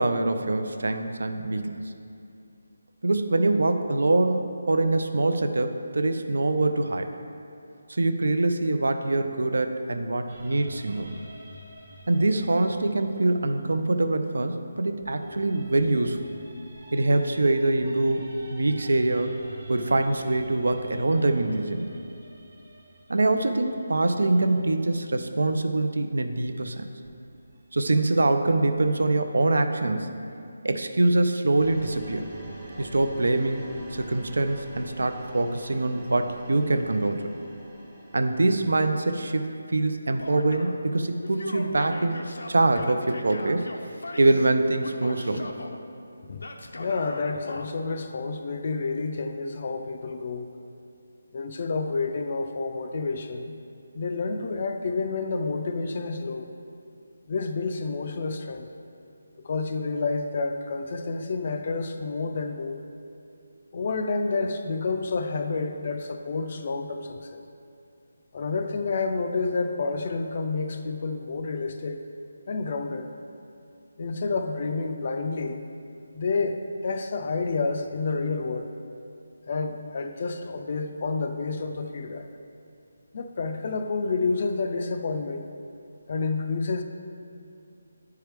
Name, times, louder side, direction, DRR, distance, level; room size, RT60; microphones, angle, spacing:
voice 1, 0.0-1.9 3.0-7.1 7.9-11.2 12.1-16.3 16.9-19.4 19.7-21.9 23.1-26.8 27.7-30.1 30.6-32.3 32.8-33.6 33.9-37.3 38.1-42.2 42.5-43.7 44.2-45.5, right 2 dB, 75° right, 7 dB, 0.5 m, -24 dB
sound 1, 10.3-14.5 15.0-25.1 27.0-28.9, right 2 dB, 35° right, 0.9 m, -47 dB
sound 2, 31.6-39.3, right 2 dB, 10° right, 0.7 m, -45 dB
Male speech man speaking / Yell, 40.2-40.8 41.2-44.5 44.8-45.8 46.4-47.7, left 2 dB, 85° left, 0.6 m, -39 dB
voice 2, 46.8-50.5 51.3-53.6 53.9-56.5 57.3-58.7 59.4-62.8 63.7-67.4 68.3-72.0 72.5-73.1 74.0-75.6 76.1-78.7 79.5-82.3 83.1-85.5 86.1-86.8, left 4 dB, 30° left, 6 dB, 0.4 m, -29 dB
9.5 x 4.6 x 3.4 m, 2.5 s
hypercardioid pair, 175°, 0 cm